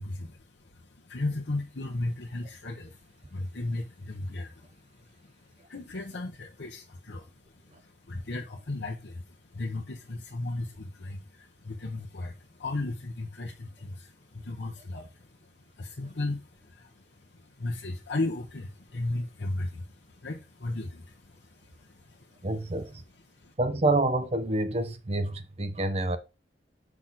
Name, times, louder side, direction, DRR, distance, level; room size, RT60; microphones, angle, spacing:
voice 1, 0.0-7.3 7.6-22.5 23.3-23.5, left 2 dB, 75° left, 1.1 m, -36 dB
voice 2, 22.4-23.0 23.6-26.2, right 2 dB, 35° right, 0.7 m, -28 dB
6.1 x 3.8 x 6.0 m
head